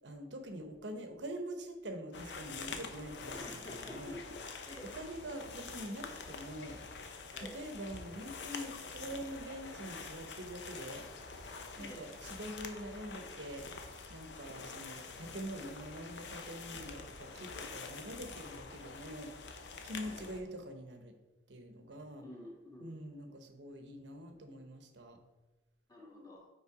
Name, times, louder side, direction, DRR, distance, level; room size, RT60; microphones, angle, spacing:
voice 1, 0.0-4.2 4.9-6.8 7.4-11.1 11.8-13.6 14.1-19.3 19.8-21.1 21.5-22.2 22.8-25.2, right 1 dB, 90° right, 6 dB, 0.9 m, -45 dB
sound 1, 2.1-20.4, left 4 dB, 80° left, 0.7 m, -46 dB
voice 2, 3.3-4.3 4.7-4.9 7.3-7.6 11.8-12.0 20.0-20.2 22.2-22.9 25.9-26.5, left 1 dB, 20° left, -3 dB, 1.5 m, -49 dB
5.6 x 4.4 x 4.9 m, 1.1 s
head